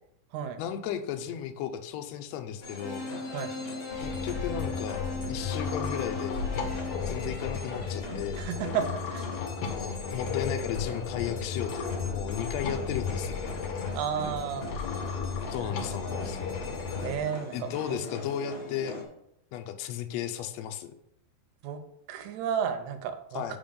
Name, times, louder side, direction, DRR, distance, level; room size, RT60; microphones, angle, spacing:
voice 1, 0.6-3.1 4.0-5.0 5.3-6.4 7.1-8.4 9.6-13.5 15.5-16.4 17.5-19.0 19.5-20.9 23.3-23.6, left 9 dB, 80° left, 6 dB, 1.6 m, -34 dB
sound 1, 2.6-19.0, left 1 dB, 45° left, 1.6 m, -43 dB
sound 2, 2.8-8.0, left 3 dB, 20° left, 1.0 m, -39 dB
voice 2, 3.3-3.7 8.3-9.3 13.9-14.7 15.6-16.2 17.0-18.0 21.6-21.8 22.1-23.6, right 8 dB, 75° right, 7 dB, 2.0 m, -33 dB
sound 3, 3.9-17.2, left 5 dB, 65° left, 1.6 m, -34 dB
5.3 x 5.2 x 5.3 m, 0.79 s
omnidirectional pair, 3.7 m